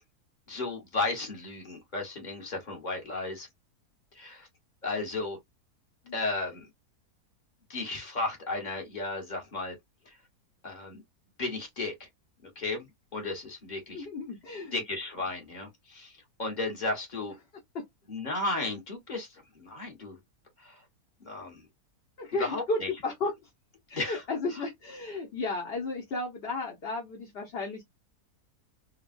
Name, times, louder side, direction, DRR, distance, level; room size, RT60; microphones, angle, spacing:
voice 1, 0.5-3.5 4.1-4.5 4.8-5.4 6.1-6.7 7.7-9.8 10.6-11.0 11.4-12.1 12.5-14.1 14.7-16.1 16.4-17.3 18.1-20.2 20.6-20.8 21.2-21.7 22.4-22.9 23.9-24.2, left 2 dB, 30° left, 1.5 m, -34 dB
voice 2, 13.9-14.8 17.7-17.8 22.2-23.3 23.9-27.8, left 3 dB, 45° left, 1.0 m, -33 dB
3.7 x 2.4 x 2.5 m
omnidirectional pair, 1.7 m